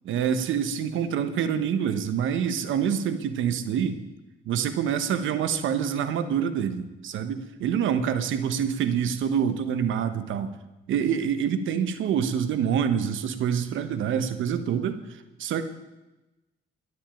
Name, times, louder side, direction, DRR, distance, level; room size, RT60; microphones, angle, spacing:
voice 1, 0.0-4.0 4.5-10.5 10.9-15.7, right 8 dB, 80° right, 11 dB, 1.2 m, -26 dB
12.5 x 8.3 x 9.0 m, 1.0 s
cardioid pair, 90°, 20 cm